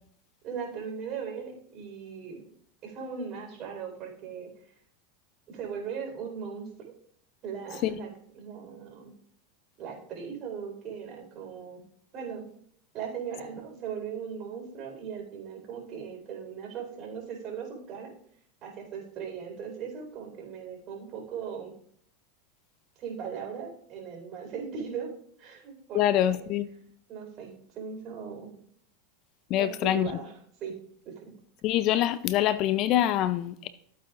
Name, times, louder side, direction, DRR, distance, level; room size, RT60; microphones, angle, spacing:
voice 1, 0.4-2.4 2.8-4.5 5.5-6.9 7.4-9.2 9.8-11.8 12.1-12.4 12.9-18.1 18.6-21.7 23.0-25.1 25.4-26.5 27.1-28.5 29.6-30.7 31.0-31.3, right 6 dB, 45° right, 4.3 m, -38 dB
voice 2, 25.9-26.7 29.5-30.1 31.6-33.7, left 12 dB, 50° left, 0.5 m, -25 dB
14.5 x 8.3 x 2.5 m
supercardioid pair, 120°, 0 cm